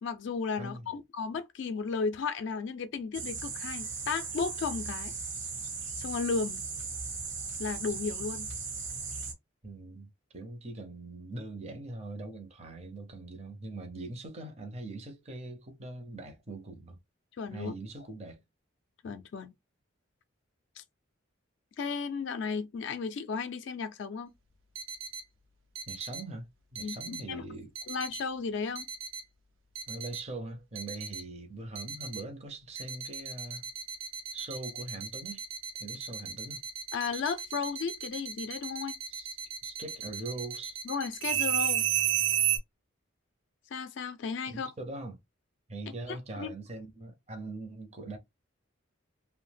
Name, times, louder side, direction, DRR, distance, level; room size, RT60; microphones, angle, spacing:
voice 1, 0.0-5.2 6.0-6.6 7.6-8.5 17.4-17.7 19.0-19.5 20.8-20.9 21.8-24.3 26.8-27.4 27.9-28.9 36.9-39.0 40.8-41.9 43.7-44.7 46.1-46.5, left 5 dB, 60° left, 0.3 m, -34 dB
sound 1, 3.1-9.3, right 4 dB, 65° right, 1.0 m, -37 dB
voice 2, 9.6-17.0 17.5-18.4 25.9-26.5 26.7-27.7 29.9-33.7 34.3-35.4 35.8-36.6 39.1-39.4 39.6-40.8 44.5-45.2 45.7-48.2, right 2 dB, 30° right, 0.5 m, -42 dB
sound 2, 24.8-25.2 25.8-26.2 26.8-27.2 27.8-28.2 28.8-29.2 29.8-30.2 30.8-31.2 31.8-32.2 32.8-42.6, right 9 dB, 80° right, 0.5 m, -33 dB
2.7 x 2.0 x 3.2 m
head